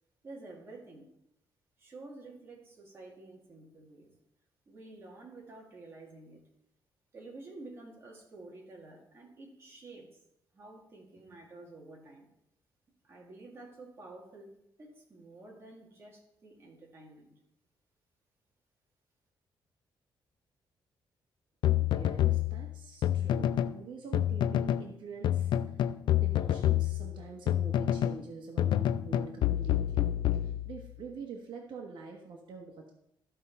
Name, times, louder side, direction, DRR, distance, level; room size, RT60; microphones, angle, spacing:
voice 1, 0.2-1.1 1.8-4.1 4.7-6.4 7.1-10.2 10.5-12.3 13.0-17.3, right 2 dB, 30° right, -1 dB, 2.0 m, -50 dB
sound 1, 21.6-23.8 24.1-24.9 25.2-28.2 28.6-31.0, left 11 dB, 60° left, 0.3 m, -28 dB
voice 2, 21.8-25.9 26.2-32.9, right 5 dB, 65° right, 1 dB, 1.2 m, -46 dB
13.5 x 5.5 x 4.1 m, 0.80 s
cardioid pair, 170°, 9 cm